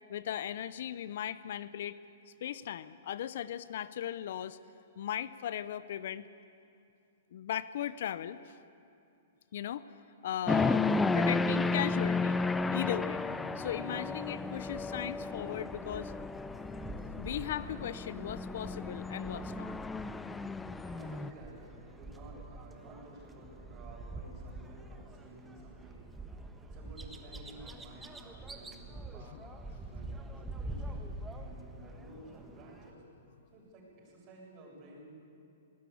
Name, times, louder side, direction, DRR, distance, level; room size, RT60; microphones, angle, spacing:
voice 1, 0.1-2.0 2.4-4.6 5.0-6.3 7.3-8.6 9.5-9.9 10.2-12.4 12.7-13.2 13.6-16.1 17.2-19.7 29.3-29.4, left 10 dB, 65° left, 16 dB, 0.6 m, -37 dB
sound 1, 10.5-21.3, left 3 dB, 10° left, 0.6 m, -33 dB
sound 2, 13.9-32.9, right 2 dB, 10° right, 1.3 m, -47 dB
voice 2, 20.8-26.0 26.7-29.5 29.8-33.0 33.5-35.0, right 1 dB, 35° right, -2 dB, 7.4 m, -53 dB
20.0 x 18.5 x 8.5 m, 2.5 s
hypercardioid pair, 145°, 0 cm